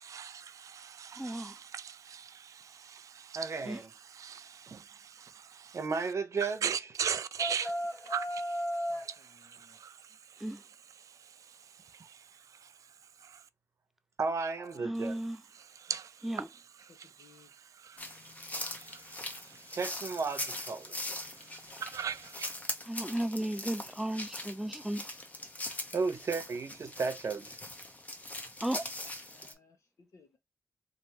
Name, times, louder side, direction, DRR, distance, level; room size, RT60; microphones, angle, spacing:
voice 1, 0.1-2.1 2.7-3.5 4.1-5.8 6.6-7.7 8.1-8.6 9.0-9.1 9.4-9.5 9.8-9.9 15.8-16.1 17.0-17.1 17.8-18.0 18.7-19.2 21.8-22.5, right 7 dB, 75° right, 0.3 m, -38 dB
voice 2, 1.2-1.6 3.6-3.8 10.4-10.6 14.8-15.4 16.2-16.5 22.8-25.0 28.6-28.9, right 1 dB, 5° right, 0.4 m, -34 dB
voice 3, 3.4-3.9 4.7-4.8 5.7-6.9 14.2-15.2 19.7-20.9 25.9-27.5, right 4 dB, 60° right, 0.7 m, -34 dB
sound 1, 7.0-9.1, equal, 50° left, 1.5 m, -35 dB
voice 4, 8.9-9.8 14.6-14.9 16.9-17.5 18.0-18.1 29.2-30.3, left 4 dB, 70° left, 1.0 m, -61 dB
sound 2, 18.0-29.5, left 1 dB, 25° left, 0.8 m, -41 dB
3.2 x 2.6 x 2.8 m
cardioid pair, 80°, 6 cm